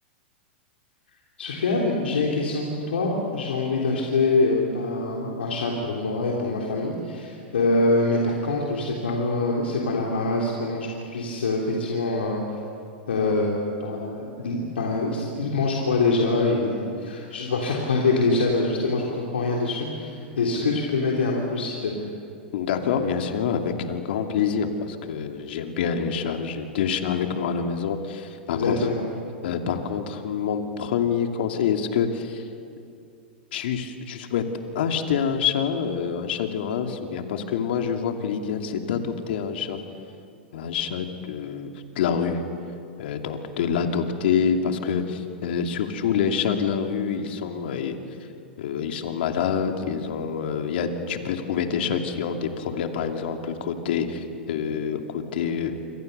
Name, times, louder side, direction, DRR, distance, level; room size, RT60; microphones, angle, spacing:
voice 1, 1.4-12.4 13.1-22.1 28.5-29.0, left 3 dB, 85° left, -2 dB, 3.6 m, -24 dB
voice 2, 22.5-28.9 29.4-32.4 33.5-34.4 34.7-39.8 40.5-42.4 43.0-48.0 48.6-55.8, left 7 dB, 70° left, 4 dB, 2.6 m, -26 dB
27.5 x 26.0 x 6.8 m, 2.5 s
hypercardioid pair, 110°, 6 cm